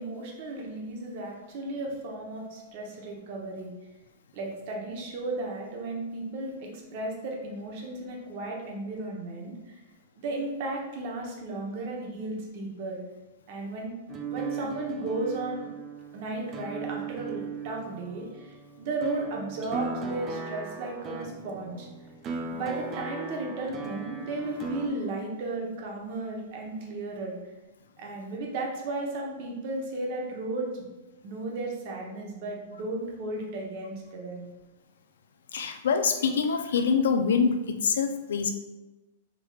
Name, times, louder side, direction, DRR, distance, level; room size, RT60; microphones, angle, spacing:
voice 1, 0.0-3.7 4.3-9.8 10.2-13.0 13.5-13.9 14.3-15.7 16.1-21.9 22.5-27.4 28.0-30.9 31.2-34.5, right 2 dB, 45° right, -1 dB, 0.8 m, -34 dB
sound 1, 14.1-24.9, right 5 dB, 25° right, 0.3 m, -38 dB
voice 2, 35.5-38.5, left 5 dB, 90° left, 7 dB, 0.4 m, -25 dB
3.6 x 3.2 x 2.3 m, 1.1 s
supercardioid pair, 155°, 0 cm